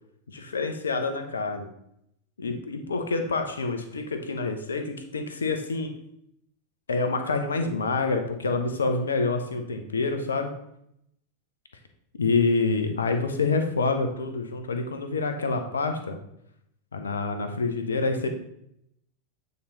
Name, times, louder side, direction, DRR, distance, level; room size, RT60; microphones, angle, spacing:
voice 1, 0.3-1.7 2.4-5.9 6.9-10.5 12.2-16.2 16.9-18.3, left 3 dB, 70° left, 6 dB, 0.9 m, -27 dB
8.6 x 4.0 x 4.1 m, 0.76 s
figure-of-eight pair, 90°, 0 cm